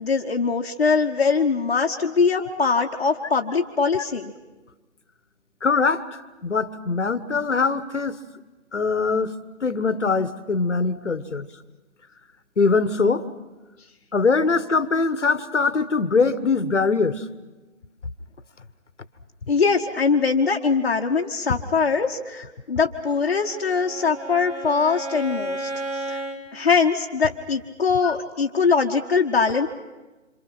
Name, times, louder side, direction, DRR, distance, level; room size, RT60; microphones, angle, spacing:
voice 1, 0.0-4.3 19.5-26.2 26.5-29.7, left 5 dB, 45° left, -1 dB, 1.1 m, -22 dB
voice 2, 5.6-8.2 8.7-9.3 9.6-11.5 12.6-13.3 14.1-17.2 28.0-28.1, left 4 dB, 60° left, 14 dB, 1.3 m, -22 dB
Bowed string instrument, 23.2-26.4, right 2 dB, 60° right, 5.4 m, -33 dB
27.0 x 27.0 x 5.9 m, 1.2 s
figure-of-eight pair, 150°, 40 cm